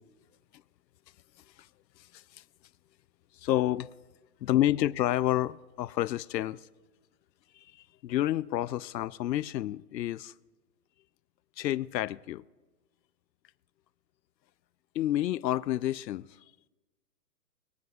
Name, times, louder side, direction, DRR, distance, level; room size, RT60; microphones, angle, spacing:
voice 1, 2.1-2.4 3.4-3.9 4.4-6.7 7.5-10.3 11.6-12.4 14.9-16.4, left 13 dB, 85° left, 0.6 m, -29 dB
25.0 x 9.5 x 2.4 m
hypercardioid pair, 170°, 49 cm